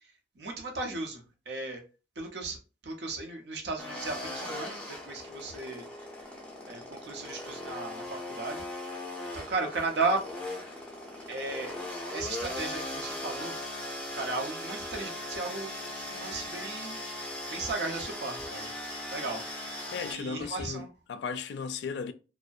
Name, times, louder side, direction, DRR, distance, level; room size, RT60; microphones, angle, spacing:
voice 1, 0.4-1.8 2.2-2.6 2.8-5.9 6.7-8.6 9.3-10.2 11.3-11.8 12.1-13.6 14.1-17.0 17.5-18.7 19.1-19.7 20.1-20.9, right 3 dB, 80° right, 0.7 m, -35 dB
sound 1, 3.8-20.1, left 1 dB, 5° left, 0.5 m, -39 dB
voice 2, 19.9-22.1, left 5 dB, 80° left, 0.3 m, -36 dB
2.6 x 2.1 x 2.3 m
head